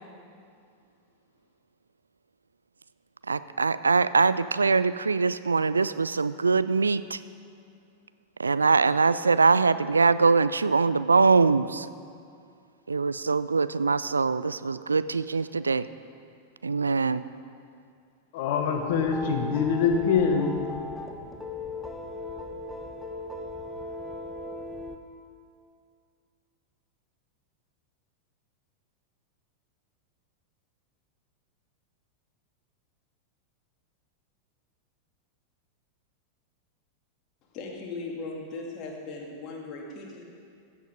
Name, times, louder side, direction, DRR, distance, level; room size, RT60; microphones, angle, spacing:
voice 1, 3.3-7.2 8.4-11.9 12.9-15.9 16.6-17.2, right 4 dB, 75° right, 15 dB, 0.3 m, -23 dB
voice 2, 18.3-20.5, left 6 dB, 50° left, 5 dB, 1.3 m, -24 dB
sound 1, 18.8-25.0, left 2 dB, 5° left, 1.0 m, -38 dB
voice 3, 37.5-40.2, left 3 dB, 35° left, -1 dB, 2.2 m, -38 dB
15.5 x 7.8 x 5.1 m, 2.3 s
figure-of-eight pair, 90°, 0 cm